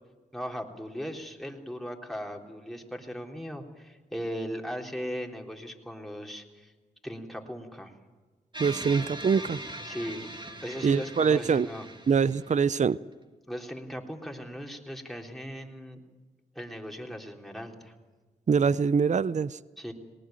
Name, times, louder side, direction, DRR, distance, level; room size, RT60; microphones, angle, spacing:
voice 1, 0.3-6.7 7.0-7.9 9.8-10.3 10.6-11.9 13.5-16.0 16.6-17.9 19.8-19.9, equal, ahead, 3.7 m, -38 dB
sound 1, 8.5-12.9, right 1 dB, 25° right, 2.5 m, -41 dB
voice 2, 8.6-9.6 10.8-11.7 12.1-13.0 18.5-19.6, right 6 dB, 45° right, 0.6 m, -24 dB
19.5 x 19.0 x 9.2 m
supercardioid pair, 45°, 18 cm